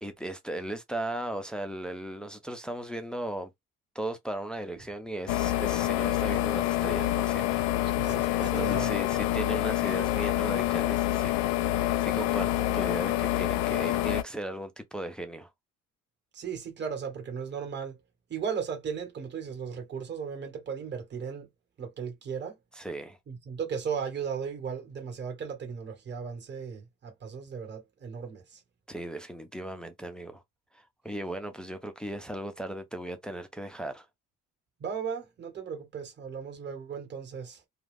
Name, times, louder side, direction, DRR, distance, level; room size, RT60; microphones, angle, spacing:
voice 1, 0.0-3.5 3.9-11.3 11.6-15.5 22.7-23.2 28.9-30.4 30.7-34.1, right 1 dB, 5° left, 0.4 m, -37 dB
sound 1, 5.3-14.2, left 14 dB, 85° left, 0.5 m, -27 dB
voice 2, 7.8-8.9 16.3-18.0 18.3-21.5 21.8-22.6 23.3-28.6 34.8-37.6, right 6 dB, 35° right, 1.3 m, -36 dB
2.4 x 2.3 x 3.4 m
cardioid pair, 120°, 32 cm